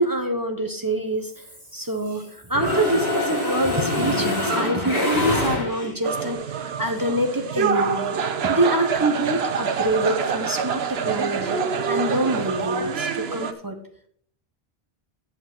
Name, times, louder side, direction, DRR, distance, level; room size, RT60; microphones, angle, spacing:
voice 1, 0.0-1.4 1.7-6.4 6.8-8.1 8.4-11.6 11.9-13.8, right 1 dB, 20° right, 4 dB, 0.9 m, -25 dB
Mechanisms, 1.3-2.2 2.5-6.1, left 1 dB, 40° right, 4.7 m, -25 dB
sound 1, 6.0-13.5, right 6 dB, 75° right, 1.0 m, -26 dB
7.7 x 7.6 x 6.0 m, 0.64 s
omnidirectional pair, 1.1 m